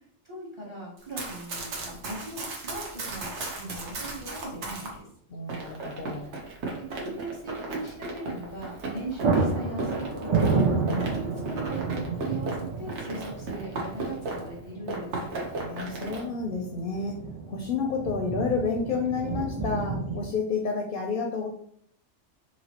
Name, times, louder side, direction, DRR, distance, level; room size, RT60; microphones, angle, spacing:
voice 1, 0.2-5.1 6.9-15.1, right 2 dB, 25° right, -5 dB, 0.8 m, -39 dB
Run, 1.0-4.9 5.5-14.6 14.9-16.2, right 2 dB, 80° right, 1.1 m, -36 dB
sound 1, 4.0-4.4 4.7-4.8 8.4-8.6 8.9-20.3, right 4 dB, 45° right, 0.4 m, -31 dB
voice 2, 5.3-6.3 15.5-17.2 17.5-21.5, left 4 dB, 60° left, 1 dB, 0.6 m, -30 dB
3.0 x 2.9 x 2.8 m, 0.65 s
omnidirectional pair, 1.2 m